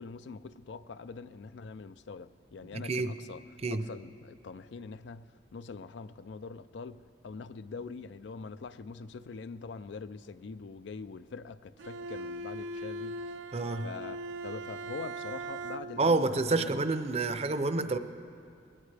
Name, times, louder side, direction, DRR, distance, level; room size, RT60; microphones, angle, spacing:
voice 1, 0.0-3.4 3.7-13.3 13.8-16.7, left 4 dB, 75° left, 0.4 m, -44 dB
Bowed string instrument, 11.8-16.2, right 2 dB, 85° right, 0.5 m, -40 dB
voice 2, 13.5-13.9 16.0-18.0, right 3 dB, 35° right, 0.5 m, -28 dB
20.5 x 16.5 x 3.3 m
head